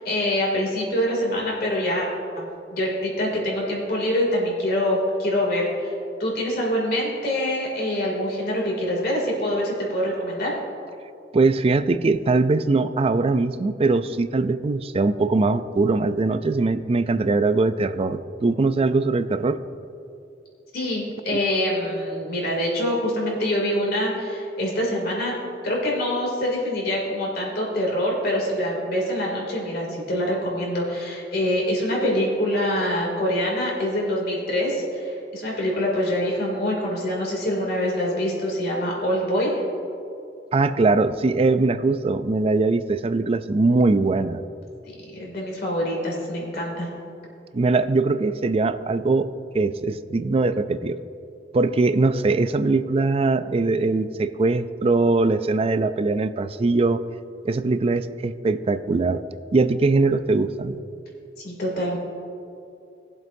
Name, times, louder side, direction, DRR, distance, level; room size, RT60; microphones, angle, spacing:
voice 1, 0.0-2.1 2.4-5.9 6.2-10.6 20.7-39.6 44.8-46.9 61.4-62.0, left 1 dB, 60° left, -2 dB, 2.7 m, -25 dB
voice 2, 11.3-19.6 40.5-44.4 47.5-51.0 51.5-57.0 57.4-59.2 59.5-60.8, right 3 dB, 35° right, 12 dB, 0.4 m, -21 dB
19.5 x 7.6 x 2.7 m, 2.7 s
head